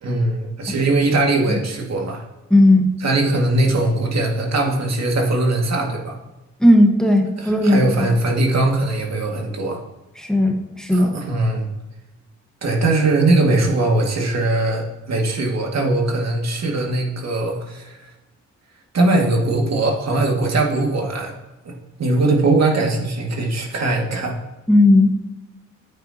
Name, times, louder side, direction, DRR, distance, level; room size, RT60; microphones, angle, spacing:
voice 1, 0.0-2.2 3.0-6.2 7.4-9.8 10.9-11.7 12.6-18.0 18.9-21.3 21.6-24.4, right 2 dB, 55° right, 1 dB, 2.1 m, -20 dB
voice 2, 2.5-2.9 6.6-8.1 10.1-11.1 24.7-25.1, left 1 dB, ahead, 2 dB, 1.4 m, -15 dB
11.0 x 8.7 x 2.9 m, 1.0 s
cardioid pair, 75°, 31 cm